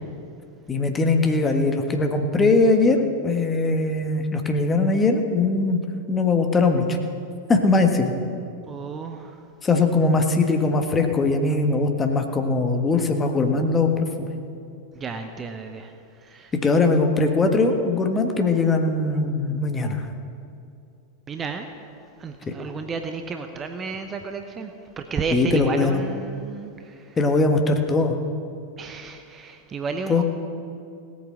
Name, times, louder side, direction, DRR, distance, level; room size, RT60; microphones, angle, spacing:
voice 1, 0.7-5.8 6.1-7.0 7.5-8.1 9.6-14.3 16.5-20.0 22.5-22.6 25.3-26.0 27.2-28.1 30.1-30.2, left 3 dB, 20° left, 5 dB, 1.4 m, -21 dB
voice 2, 8.7-9.4 14.9-15.9 16.2-16.5 21.3-21.7 22.2-27.2 28.8-30.2, right 4 dB, 20° right, 6 dB, 0.9 m, -32 dB
18.0 x 8.5 x 6.3 m, 2.5 s
figure-of-eight pair, 90°, 0 cm